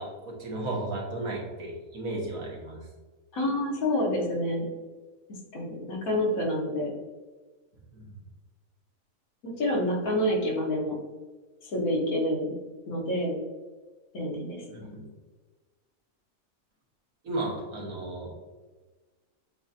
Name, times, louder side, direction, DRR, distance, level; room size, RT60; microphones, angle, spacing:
voice 1, 0.0-2.8 7.9-8.1 14.7-15.1 17.2-18.4, right 2 dB, 85° right, -3 dB, 1.7 m, -34 dB
voice 2, 3.3-4.7 5.5-6.9 9.6-11.0 11.6-12.5 12.9-13.4 14.1-14.9, left 1 dB, 85° left, -2 dB, 1.6 m, -28 dB
7.6 x 2.7 x 2.5 m, 1.3 s
omnidirectional pair, 1.4 m